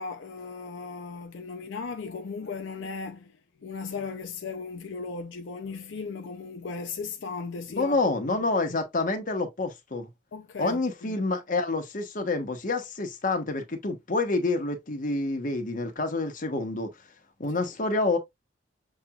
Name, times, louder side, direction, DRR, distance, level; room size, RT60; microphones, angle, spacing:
voice 1, 0.0-8.0 8.7-8.8 10.3-11.2, left 4 dB, 80° left, 0.5 m, -37 dB
voice 2, 7.7-10.1 10.6-16.9 17.4-18.2, left 3 dB, 45° left, 1.0 m, -28 dB
6.5 x 2.9 x 2.3 m
head